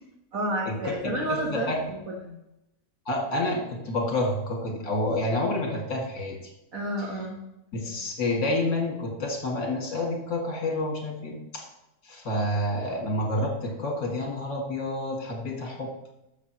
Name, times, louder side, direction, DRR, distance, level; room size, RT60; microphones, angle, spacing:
voice 1, 0.3-2.3 6.7-7.4, right 1 dB, 55° right, -1 dB, 1.8 m, -30 dB
voice 2, 1.3-1.8 3.1-6.4 7.7-11.7 12.0-15.9, left 1 dB, 60° left, 0 dB, 2.5 m, -29 dB
11.5 x 7.0 x 3.0 m, 0.88 s
omnidirectional pair, 1.8 m